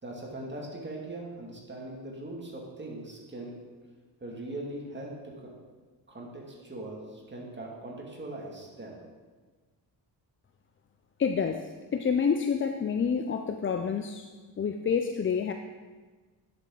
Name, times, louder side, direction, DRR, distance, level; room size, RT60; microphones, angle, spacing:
voice 1, 0.0-3.6 4.2-5.5 6.1-9.0, right 1 dB, 25° right, -2 dB, 2.2 m, -40 dB
voice 2, 11.2-14.3 14.6-15.5, left 6 dB, 30° left, 6 dB, 0.4 m, -28 dB
10.5 x 7.3 x 3.9 m, 1.4 s
cardioid pair, 100°, 43 cm